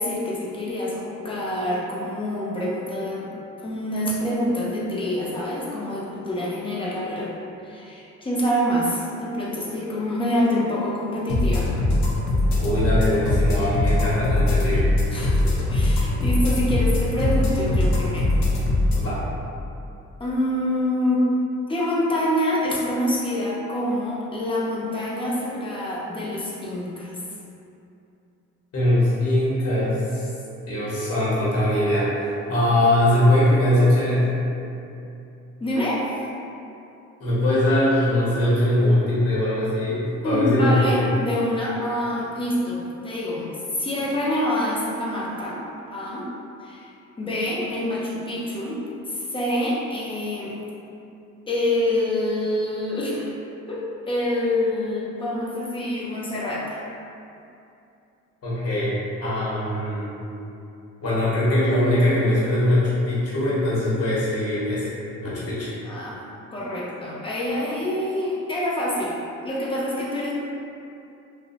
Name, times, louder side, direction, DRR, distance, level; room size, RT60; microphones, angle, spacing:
voice 1, 0.0-3.3 3.6-7.3 7.6-11.7 15.1-18.3 20.2-21.2 21.7-27.2 35.6-36.2 40.2-45.6 45.9-46.3 46.6-46.9 47.2-48.8 49.1-50.5 51.5-53.3 53.7-56.7 65.8-66.2 66.5-69.2 69.4-70.3, left 1 dB, 15° left, -6 dB, 0.5 m, -26 dB
sound 1, 11.3-19.0, left 2 dB, 70° left, 0.5 m, -21 dB
voice 2, 12.6-14.9 18.9-19.2 28.7-30.3 30.7-32.1 32.5-34.3 37.2-41.0 58.4-58.9 59.2-60.1 61.0-64.9 65.2-65.7, left 1 dB, 50° left, -9 dB, 0.9 m, -21 dB
2.6 x 2.0 x 2.5 m, 2.7 s
cardioid pair, 90°, 30 cm